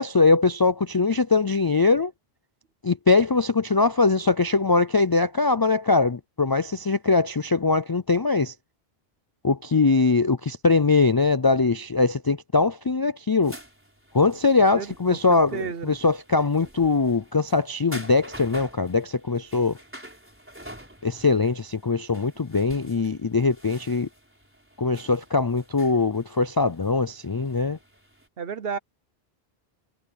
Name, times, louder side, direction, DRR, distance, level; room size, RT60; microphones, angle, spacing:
voice 1, 0.0-2.1 2.8-8.5 9.4-13.6 14.1-19.7 21.0-24.1 24.8-27.8, left 4 dB, 40° left, 0.3 m, -22 dB
sound 1, 13.4-28.3, equal, 10° right, 4.4 m, -47 dB
voice 2, 14.8-15.9 28.4-28.8, right 7 dB, 70° right, 1.2 m, -33 dB
omnidirectional pair, 1.0 m